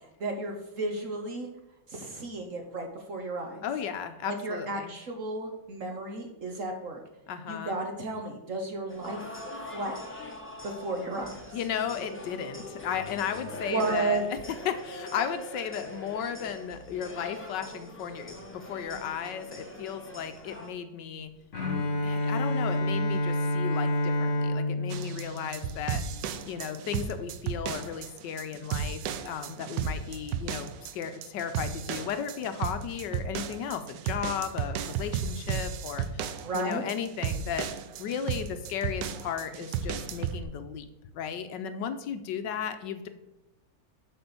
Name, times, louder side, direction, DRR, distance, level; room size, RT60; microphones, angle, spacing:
voice 1, 0.2-1.5 1.9-3.6 4.3-7.0 7.5-9.2 9.7-10.3 10.6-11.3 13.7-14.2 36.4-36.8, right 3 dB, 50° right, 3 dB, 1.2 m, -33 dB
voice 2, 3.6-4.9 7.3-7.8 11.5-14.4 14.6-21.3 22.0-26.0 26.5-36.3 36.5-37.7 38.0-40.9 41.1-43.1, left 8 dB, 75° left, 9 dB, 1.2 m, -35 dB
sound 1, 8.9-20.7, left 1 dB, 10° left, 1.0 m, -43 dB
Bowed string instrument, 21.5-26.4, left 1 dB, 40° left, 1.8 m, -29 dB
sound 2, 24.9-40.4, right 7 dB, 75° right, 1.2 m, -34 dB
7.9 x 4.3 x 6.8 m, 0.94 s
omnidirectional pair, 2.1 m